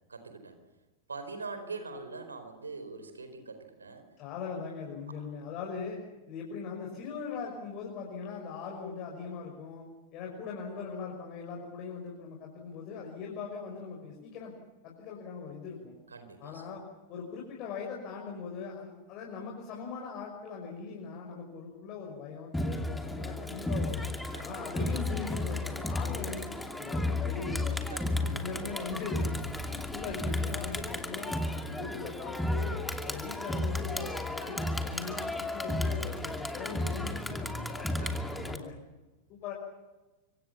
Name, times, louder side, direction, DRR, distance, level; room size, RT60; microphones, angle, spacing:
voice 1, 0.1-0.5 1.1-4.0 5.1-5.2 16.1-16.7 24.3-24.6 27.9-28.3 38.0-38.5, right 4 dB, 75° right, 8 dB, 4.4 m, -43 dB
voice 2, 4.2-6.0 6.3-9.8 10.1-14.5 14.8-15.9 16.4-16.8 17.1-24.0 24.4-27.8 28.2-29.4 29.7-32.7 33.0-37.9 38.3-38.8 39.3-39.5, left 5 dB, 40° left, 0 dB, 5.7 m, -40 dB
Crowd, 22.5-38.6, left 2 dB, 5° left, 2.6 m, -33 dB
26.0 x 25.0 x 7.3 m, 1.1 s
figure-of-eight pair, 90°, 0 cm